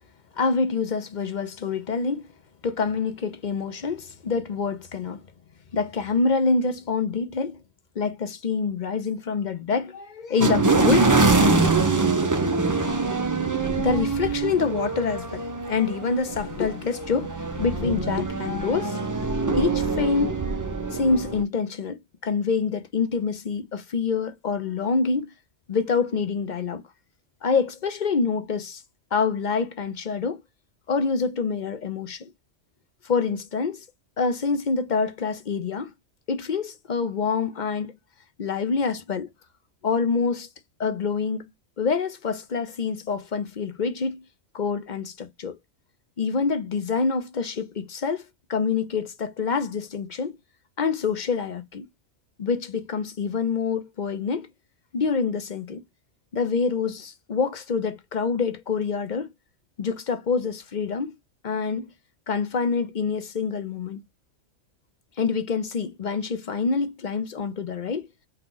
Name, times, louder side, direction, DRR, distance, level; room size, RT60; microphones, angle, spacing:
voice 1, 0.4-2.3 2.6-5.2 5.7-7.6 8.0-11.3 13.6-20.3 20.9-25.3 25.7-26.8 27.4-28.8 29.1-30.4 30.9-32.3 33.0-33.8 34.2-35.9 36.3-37.9 38.4-39.3 39.8-40.5 40.8-41.5 41.8-44.2 44.5-45.6 46.2-48.2 48.5-50.4 50.8-51.9 52.4-54.5 54.9-55.8 56.3-59.3 59.8-61.1 61.4-61.9 62.3-64.0 65.2-68.1, left 5 dB, 45° left, 0.7 m, -26 dB
sound 1, 10.4-21.4, right 3 dB, 25° right, 0.4 m, -24 dB
4.3 x 2.3 x 3.8 m
omnidirectional pair, 1.3 m